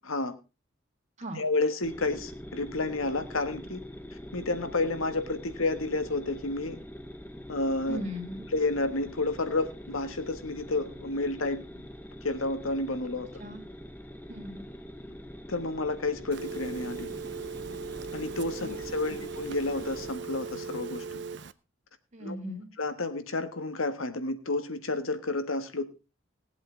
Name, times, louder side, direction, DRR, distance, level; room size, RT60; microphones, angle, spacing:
voice 1, 0.0-0.3 1.3-3.8 4.3-6.8 7.5-8.0 8.5-11.6 12.2-13.4 15.5-17.1 18.1-21.2 22.2-22.4 22.8-25.8, left 2 dB, 90° left, 9 dB, 1.6 m, -30 dB
sound 1, 1.8-20.1, equal, 10° left, 0.9 m, -44 dB
voice 2, 7.9-8.5 13.4-13.6 14.3-14.7 18.6-18.7 19.1-19.2 22.1-22.7, equal, 35° right, 4 dB, 2.5 m, -38 dB
Telephone, 16.3-21.5, right 5 dB, 60° right, 0.6 m, -38 dB
19.0 x 8.1 x 3.9 m, 0.30 s
head